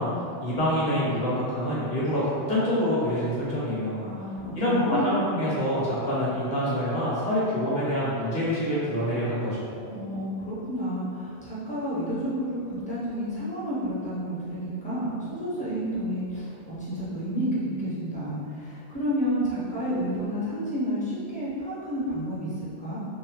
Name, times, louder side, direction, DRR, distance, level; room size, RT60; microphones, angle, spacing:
voice 1, 0.0-4.0 4.5-9.7, equal, 40° left, -9 dB, 0.9 m, -26 dB
voice 2, 4.0-5.1 9.9-23.0, equal, 10° left, -10 dB, 0.4 m, -30 dB
2.7 x 2.1 x 2.9 m, 2.5 s
omnidirectional pair, 1.3 m